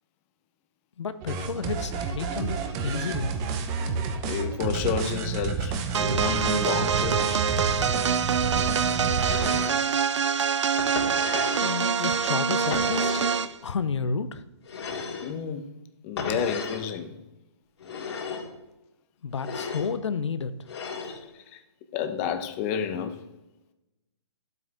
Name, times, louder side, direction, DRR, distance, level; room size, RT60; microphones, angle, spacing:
voice 1, 1.0-3.4 11.6-13.2 13.6-14.4 19.2-20.5, left 5 dB, 85° left, 0.8 m, -31 dB
sound 1, 1.2-9.7, right 5 dB, 25° right, 0.9 m, -30 dB
voice 2, 4.2-7.4 15.2-15.7 16.0-17.2 21.0-21.2 21.5-21.6 21.9-23.2, left 8 dB, 30° left, 1.0 m, -30 dB
sound 2, 5.9-13.6, right 6 dB, 85° right, 0.6 m, -25 dB
sound 3, 9.2-9.8 10.8-11.8 12.7-13.4 14.7-15.3 16.2-16.9 17.8-18.5 19.4-19.9 20.7-21.2, left 5 dB, 65° left, 2.9 m, -34 dB
11.5 x 8.0 x 3.6 m
hypercardioid pair, 150°, 15 cm